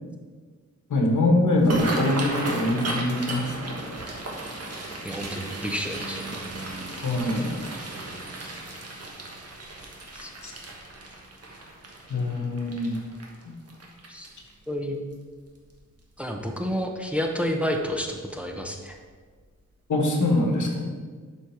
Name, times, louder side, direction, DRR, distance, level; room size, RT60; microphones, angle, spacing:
voice 1, 0.9-3.7 7.0-7.5 10.4-10.5 12.1-12.9 19.9-20.9, left 1 dB, 80° left, 1 dB, 1.6 m, -23 dB
sound 1, 1.5-14.7 15.1-15.4 15.7-16.2 16.6-16.7 17.9-18.1 18.5-18.6 19.1-19.2, right 2 dB, 55° right, 1.4 m, -35 dB
voice 2, 5.0-6.3 10.2-10.3 14.1-14.3 14.7-15.0 16.2-19.0, equal, 5° right, 3 dB, 0.7 m, -30 dB
11.5 x 4.4 x 4.7 m, 1.5 s
wide cardioid pair, 140°, 30 cm